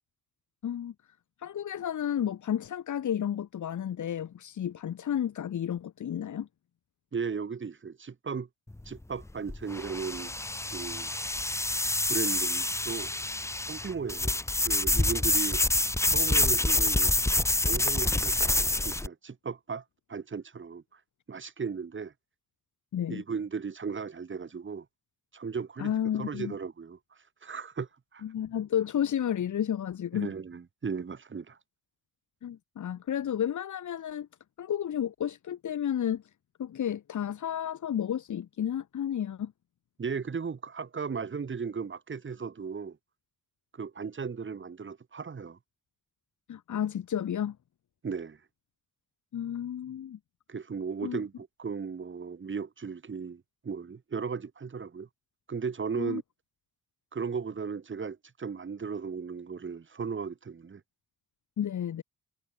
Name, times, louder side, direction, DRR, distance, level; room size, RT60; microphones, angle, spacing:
voice 1, 0.6-0.9 1.4-6.5 22.9-23.2 25.8-26.5 28.2-30.3 32.4-34.3 34.6-36.2 36.6-39.5 46.5-47.6 49.3-50.2 51.0-51.2 55.9-56.2 61.6-62.0, left 9 dB, 65° left, 1.6 m, -32 dB
voice 2, 7.1-8.5 8.9-10.3 10.7-11.1 12.1-13.1 13.7-14.4 14.6-15.6 16.0-17.1 17.6-19.8 20.1-21.0 21.3-22.1 23.1-24.9 25.3-25.9 26.2-28.2 30.1-31.6 40.0-43.0 43.7-45.6 48.0-48.4 50.5-55.1 55.5-56.2 57.1-60.8, right 5 dB, 35° right, 2.3 m, -36 dB
sound 1, 8.7-19.1, left 2 dB, 10° left, 0.9 m, -27 dB
wide cardioid pair, 120°, 33 cm